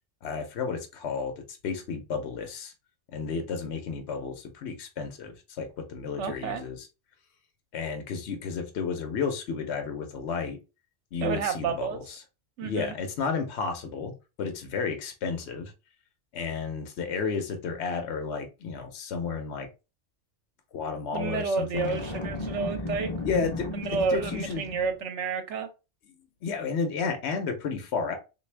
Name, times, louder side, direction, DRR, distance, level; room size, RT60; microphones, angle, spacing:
voice 1, 0.2-2.7 3.1-6.9 7.7-10.6 11.1-12.2 12.6-14.1 14.4-15.7 16.3-19.7 20.7-22.0 23.2-24.6 26.4-28.2, left 5 dB, 65° left, 1.0 m, -32 dB
voice 2, 6.2-6.6 11.2-12.0 12.6-12.9 21.1-23.1 23.7-25.7, right 5 dB, 70° right, 1.0 m, -30 dB
Boom, 21.8-25.0, left 1 dB, 25° left, 0.7 m, -35 dB
3.3 x 2.5 x 3.3 m
omnidirectional pair, 1.3 m